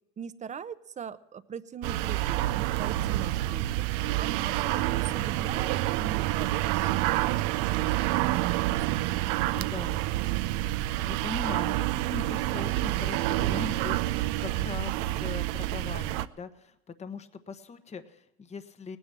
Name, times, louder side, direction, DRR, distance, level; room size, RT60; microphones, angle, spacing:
voice 1, 0.2-3.9 4.2-8.0 8.3-9.0, right 7 dB, 25° right, 13 dB, 0.9 m, -41 dB
sound 1, 1.8-16.3, right 16 dB, 70° right, 0.7 m, -28 dB
voice 2, 9.5-10.5 11.0-19.0, left 4 dB, 20° left, 10 dB, 1.2 m, -41 dB
18.0 x 10.0 x 7.5 m, 0.87 s
supercardioid pair, 110°, 30 cm